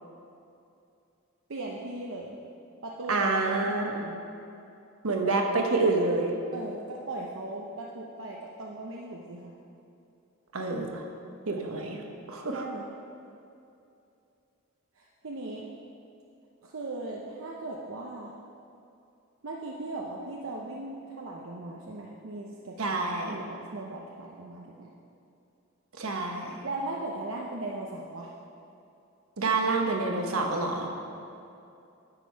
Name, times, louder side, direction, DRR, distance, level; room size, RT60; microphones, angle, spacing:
voice 1, 1.5-2.4 2.8-3.3 3.6-4.2 6.5-9.5 11.9-12.0 12.5-12.9 15.0-15.7 16.6-18.3 19.4-23.0 23.3-24.9 26.6-28.3, right 2 dB, 65° right, -2 dB, 0.7 m, -38 dB
voice 2, 3.1-4.0 5.0-6.3 10.5-11.0 11.5-12.6 22.8-23.4 26.0-26.6 29.4-30.9, right 3 dB, 80° right, 2 dB, 1.1 m, -28 dB
10.5 x 7.4 x 4.6 m, 2.6 s
head